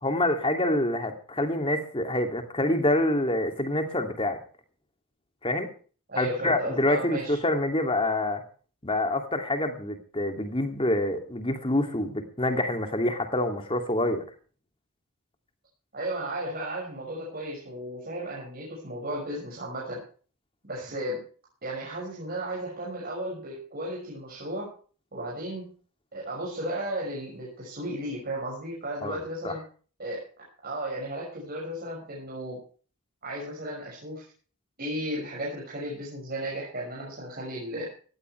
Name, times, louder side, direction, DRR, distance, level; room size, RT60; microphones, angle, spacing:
voice 1, 0.0-4.4 5.4-5.7 6.2-8.4 8.8-14.2 29.0-29.6, left 1 dB, 25° left, 5 dB, 2.6 m, -26 dB
voice 2, 6.1-7.4 15.9-20.0 20.6-21.2 21.6-24.7 25.1-25.7 26.1-29.6 30.0-30.2 30.6-32.6 33.2-34.2 34.8-37.9, right 1 dB, 45° right, -4 dB, 6.3 m, -34 dB
17.5 x 14.5 x 3.3 m, 0.40 s
head